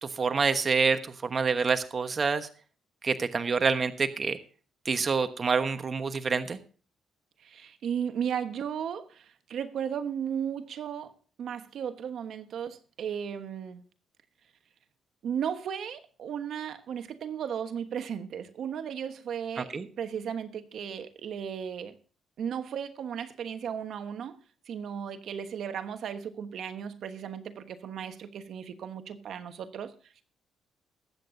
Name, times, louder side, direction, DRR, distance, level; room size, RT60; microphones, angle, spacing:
voice 1, 0.0-2.5 3.0-4.4 4.8-6.6 19.7-19.9, right 5 dB, 40° right, 9 dB, 1.2 m, -27 dB
voice 2, 7.4-13.8 15.2-21.9 22.4-24.4 24.7-29.9, right 8 dB, 65° right, 9 dB, 1.2 m, -35 dB
21.0 x 8.7 x 2.7 m, 0.40 s
cardioid pair, 90°, 0 cm